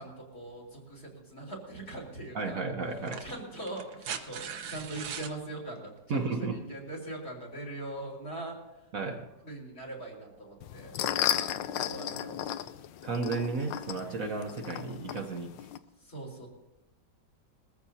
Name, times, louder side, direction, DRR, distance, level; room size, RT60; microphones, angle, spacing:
voice 1, 0.0-2.7 3.2-8.6 9.4-10.9 11.3-12.5 16.0-16.5, right 2 dB, 55° left, 0 dB, 4.5 m, -41 dB
sound 1, 1.8-1.9 2.9-5.4 6.9-7.0, right 7 dB, 85° right, 1.7 m, -40 dB
voice 2, 2.3-3.2 6.1-6.6 8.9-9.3 13.0-15.7, right 4 dB, 55° right, 3 dB, 1.2 m, -33 dB
sound 2, 10.6-15.8, left 11 dB, 80° left, 1.3 m, -34 dB
22.0 x 14.5 x 2.8 m, 0.98 s
omnidirectional pair, 2.0 m